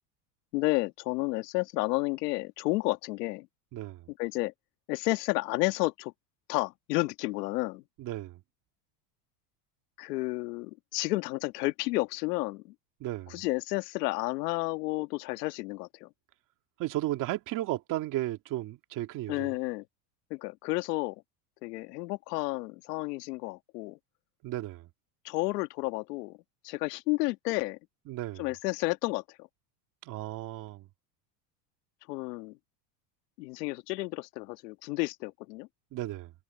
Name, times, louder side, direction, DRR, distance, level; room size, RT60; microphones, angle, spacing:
voice 1, 0.5-3.5 4.2-4.5 4.9-6.1 6.5-7.8 10.0-12.7 13.3-16.1 19.3-19.8 20.3-21.2 21.6-24.0 25.2-26.4 26.6-27.8 28.4-29.4 32.1-32.6 33.4-35.7, left 21 dB, 75° left, 2.0 m, -31 dB
voice 2, 3.7-4.1 8.0-8.4 13.0-13.4 16.8-19.5 24.4-24.9 28.1-28.5 30.0-30.9 35.9-36.3, right 15 dB, 40° right, 2.4 m, -34 dB
supercardioid pair, 155°, 48 cm